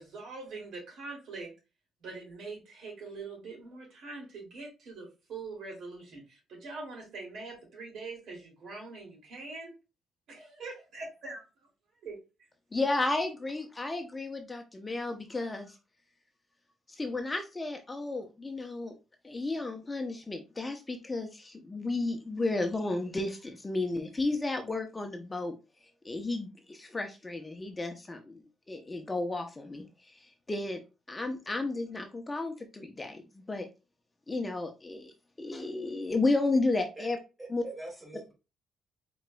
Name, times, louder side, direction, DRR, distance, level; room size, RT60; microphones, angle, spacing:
voice 1, 0.0-1.5 2.0-9.7 10.3-11.4 12.0-12.2, right 3 dB, 70° right, 2.6 m, -43 dB
voice 2, 12.7-15.7 17.0-18.9 19.2-25.5 26.0-29.9 30.5-30.8 31.1-33.7 34.3-37.2 37.5-37.6, left 2 dB, 20° left, 0.7 m, -33 dB
voice 3, 37.4-38.3, right 2 dB, 15° right, 2.3 m, -43 dB
4.7 x 3.9 x 2.3 m
cardioid pair, 90°, 0 cm